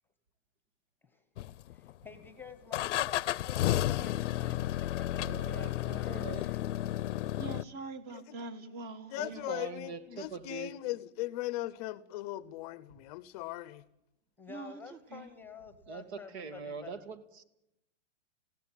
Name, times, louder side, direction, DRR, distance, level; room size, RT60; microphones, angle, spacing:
sound 1, 1.4-2.0 2.7-7.6, left 13 dB, 80° left, 0.7 m, -32 dB
voice 1, 1.7-6.7 14.4-16.9, left 6 dB, 5° left, 1.2 m, -50 dB
voice 2, 5.1-6.5 9.2-10.7 15.9-17.4, right 5 dB, 60° right, 2.2 m, -43 dB
voice 3, 7.4-9.6 14.5-15.3, right 3 dB, 25° right, 1.7 m, -44 dB
voice 4, 8.1-8.4 9.1-13.8, left 17 dB, 35° left, 0.7 m, -38 dB
20.0 x 16.5 x 9.2 m
supercardioid pair, 160°, 36 cm